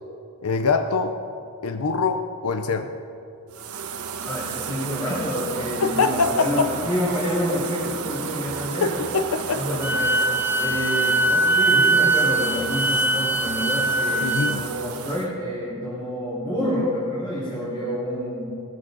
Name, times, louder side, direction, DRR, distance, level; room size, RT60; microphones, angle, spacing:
voice 1, 0.4-1.2 1.6-2.9 5.8-6.7 8.8-9.8 14.2-14.7, left 4 dB, 80° left, 8 dB, 0.6 m, -24 dB
sound 1, 3.5-15.3, right 6 dB, 80° right, 1.0 m, -33 dB
voice 2, 4.2-8.9 9.5-18.4, equal, 20° left, -11 dB, 4.4 m, -28 dB
Wind instrument woodwind instrument, 9.8-14.6, right 2 dB, 10° right, 0.3 m, -21 dB
19.0 x 14.5 x 4.0 m, 2.7 s
head